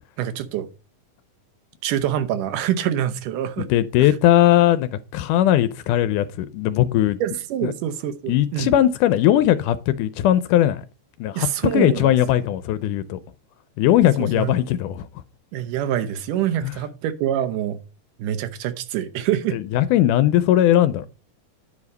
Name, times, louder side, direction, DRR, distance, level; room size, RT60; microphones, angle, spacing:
voice 1, 0.2-0.7 1.8-3.7 7.2-8.7 11.4-12.1 14.4-14.5 15.5-17.8 18.2-19.6, right 11 dB, 80° right, 2.4 m, -25 dB
voice 2, 3.6-7.2 7.6-7.7 8.3-10.8 11.2-11.5 11.7-13.2 13.8-15.1 16.6-16.8 19.5-21.1, left 12 dB, 85° left, 2.1 m, -19 dB
9.9 x 4.9 x 5.3 m
omnidirectional pair, 3.7 m